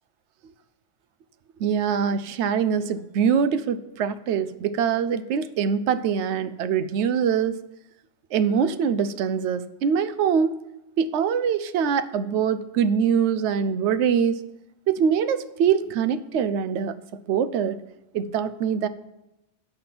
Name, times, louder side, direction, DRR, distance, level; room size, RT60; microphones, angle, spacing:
voice 1, 1.6-7.6 8.3-10.6 11.0-14.4 14.9-17.0 17.3-17.8 18.1-18.9, right 7 dB, 70° right, 13 dB, 0.9 m, -23 dB
8.6 x 7.7 x 6.0 m, 0.92 s
omnidirectional pair, 1.3 m